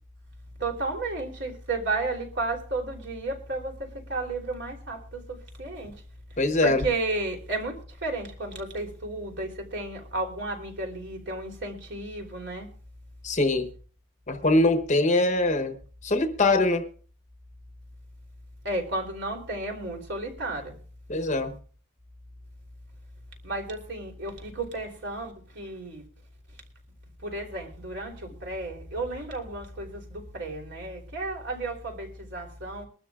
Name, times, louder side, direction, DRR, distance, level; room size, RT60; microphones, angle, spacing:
voice 1, 0.6-6.0 6.3-12.7 18.6-20.8 23.4-26.1 27.2-32.9, right 2 dB, 55° right, 1 dB, 3.3 m, -33 dB
voice 2, 6.4-6.8 13.2-13.7 14.3-15.8 16.0-16.9 21.1-21.5, left 2 dB, 35° left, 8 dB, 1.0 m, -23 dB
23.5 x 12.5 x 2.4 m, 0.43 s
head